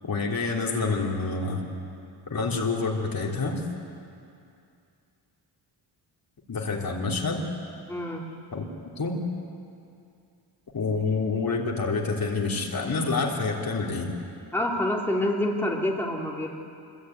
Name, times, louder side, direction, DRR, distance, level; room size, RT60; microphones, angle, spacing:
voice 1, 0.0-1.7 2.3-3.6 6.5-7.4 8.5-8.7 9.0-9.2 10.7-14.1, left 4 dB, 50° left, -1 dB, 3.5 m, -27 dB
voice 2, 7.9-8.2 14.5-16.5, left 1 dB, 5° left, -2 dB, 3.0 m, -27 dB
25.5 x 23.0 x 9.4 m, 2.5 s
wide cardioid pair, 125°, 46 cm